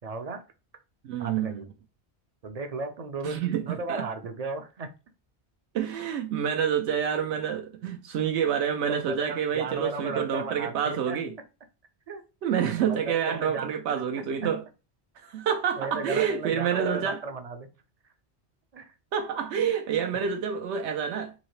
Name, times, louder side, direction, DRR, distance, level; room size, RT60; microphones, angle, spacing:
voice 1, 0.0-0.4 1.2-1.7 2.4-4.9 8.9-11.2 12.1-12.2 12.8-14.0 14.4-14.5 15.8-17.7 18.7-18.9, right 3 dB, 50° right, 0.5 m, -35 dB
voice 2, 1.0-1.6 3.2-4.1 5.7-11.3 12.4-14.6 15.2-17.2 19.1-21.3, right 8 dB, 90° right, 0.9 m, -28 dB
3.9 x 2.8 x 3.1 m
omnidirectional pair, 1.1 m